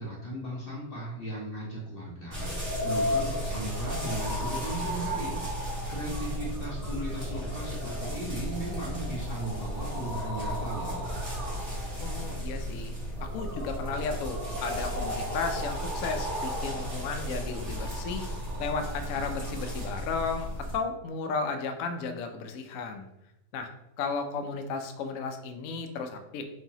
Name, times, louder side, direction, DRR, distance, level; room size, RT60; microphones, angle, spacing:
voice 1, 0.0-11.1, right 1 dB, 40° left, -5 dB, 1.0 m, -37 dB
sound 1, 2.3-20.8, equal, 45° right, 1.5 m, -33 dB
voice 2, 12.0-12.9 13.2-18.2 18.6-23.1 23.5-23.7 24.0-26.4, left 4 dB, 70° left, 6 dB, 0.9 m, -34 dB
4.6 x 2.8 x 2.8 m, 0.85 s
omnidirectional pair, 1.7 m